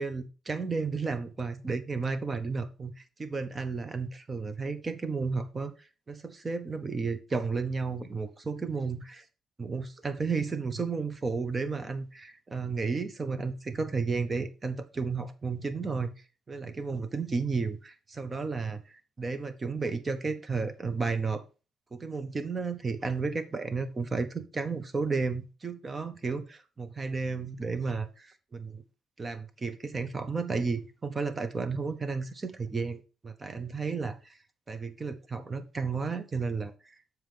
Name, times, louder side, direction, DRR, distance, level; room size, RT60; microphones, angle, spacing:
voice 1, 0.0-9.2 9.6-16.1 16.5-21.4 21.9-28.8 29.2-34.4 34.7-36.9, right 4 dB, 30° right, 1.2 m, -33 dB
7.5 x 4.7 x 5.2 m
cardioid pair, 90°, 0 cm